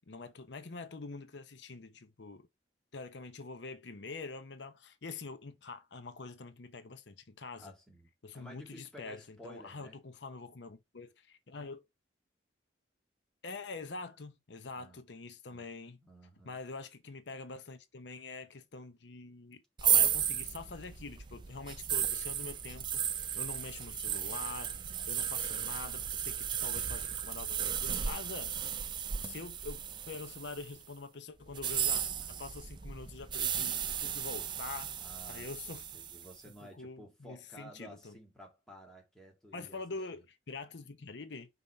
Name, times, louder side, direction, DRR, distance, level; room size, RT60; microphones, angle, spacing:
voice 1, 0.1-2.5 2.9-7.7 8.2-11.9 13.4-16.0 16.4-23.0 23.3-24.8 25.0-28.5 29.2-34.9 35.3-35.8 36.8-38.2 39.5-41.5, left 3 dB, 70° left, 0.8 m, -45 dB
voice 2, 7.6-10.0 14.7-15.0 15.5-15.7 16.0-16.6 24.7-25.3 35.0-39.8 40.1-40.2, equal, 5° left, 2.0 m, -54 dB
sound 1, 19.8-30.8 31.5-36.3, right 9 dB, 25° right, 0.4 m, -34 dB
5.5 x 3.9 x 4.3 m
head